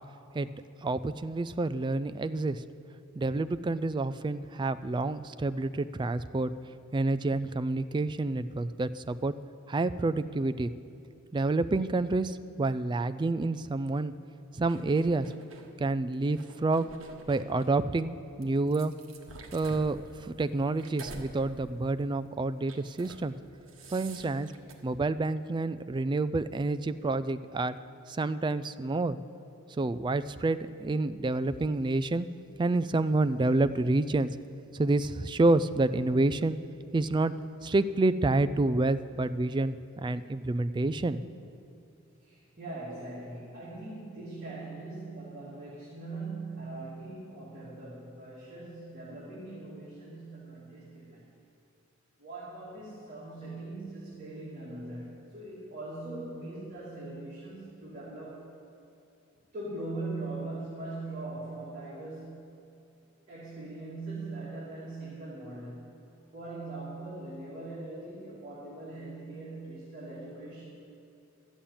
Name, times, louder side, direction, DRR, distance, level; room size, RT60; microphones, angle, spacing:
voice 1, 0.8-2.6 3.1-6.5 6.9-9.3 9.7-10.7 11.3-14.1 14.5-15.3 15.8-16.9 17.3-18.9 19.5-23.3 23.9-24.5 24.8-27.8 28.1-29.2 29.8-32.3 32.6-34.4 34.7-36.6 36.9-37.3 37.6-41.2, right 2 dB, 20° right, 13 dB, 0.3 m, -28 dB
sound 1, 14.7-15.7 16.3-17.8 18.4-21.3 21.7-22.0 22.6-23.2 23.5-24.7, right 2 dB, 70° right, 1.3 m, -48 dB
voice 2, 42.2-51.3 52.2-58.5 59.5-62.5 63.3-65.9 66.3-70.7, right 2 dB, 40° right, -9 dB, 2.9 m, -41 dB
13.0 x 7.2 x 8.7 m, 2.6 s
head